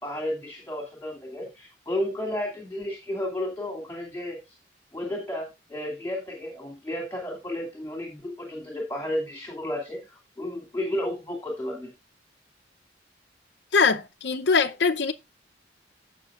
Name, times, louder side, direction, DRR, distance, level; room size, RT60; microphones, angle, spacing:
voice 1, 0.0-4.6 4.9-11.9, left 1 dB, 10° left, 2.7 m, -32 dB
voice 2, 13.7-15.1, left 5 dB, 65° left, 0.7 m, -22 dB
15.5 x 6.0 x 2.5 m
head